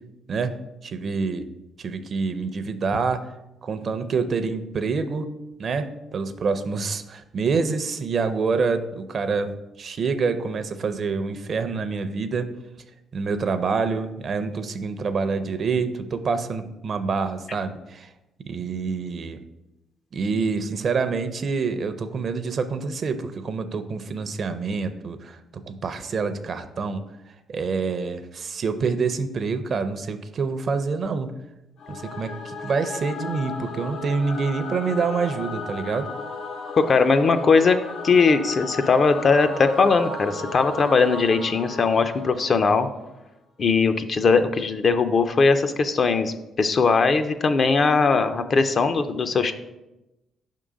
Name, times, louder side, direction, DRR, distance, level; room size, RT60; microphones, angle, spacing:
voice 1, 0.8-1.5 1.8-3.3 3.6-5.3 5.6-12.5 13.1-18.1 18.5-19.4 20.1-31.3 31.9-36.1, right 4 dB, 50° right, 10 dB, 0.5 m, -27 dB
Singing / Musical instrument, 31.8-43.1, left 3 dB, 80° left, 0.9 m, -35 dB
voice 2, 36.8-37.8 38.0-42.9 43.6-49.5, left 4 dB, 45° left, 9 dB, 0.4 m, -20 dB
5.2 x 3.7 x 5.0 m, 0.95 s
cardioid pair, 90°, 0 cm